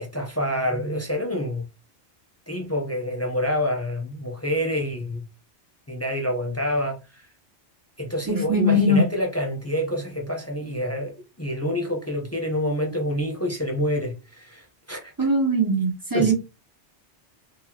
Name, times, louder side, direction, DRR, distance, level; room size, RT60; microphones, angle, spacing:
voice 1, 0.0-1.6 2.5-5.2 5.9-7.3 8.0-15.1 16.1-16.3, equal, 15° left, 0.6 m, -27 dB
voice 2, 8.3-9.0 15.2-16.3, equal, 20° right, 1.0 m, -20 dB
4.1 x 2.8 x 2.8 m
omnidirectional pair, 1.1 m